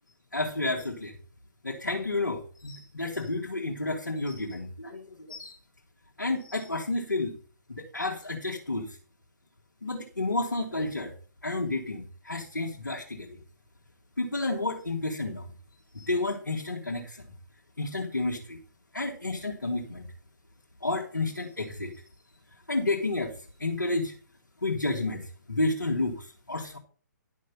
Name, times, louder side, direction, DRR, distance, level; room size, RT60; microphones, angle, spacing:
voice 1, 0.3-1.2 1.6-5.6 6.2-7.3 7.7-9.0 9.8-11.1 11.4-13.4 14.2-15.4 15.9-17.2 17.8-18.6 18.9-20.1 20.8-21.9 22.7-23.3 23.6-24.1 24.6-26.8, left 2 dB, 80° left, -2 dB, 2.3 m, -31 dB
11.5 x 6.3 x 5.6 m, 0.42 s
figure-of-eight pair, 130°, 10 cm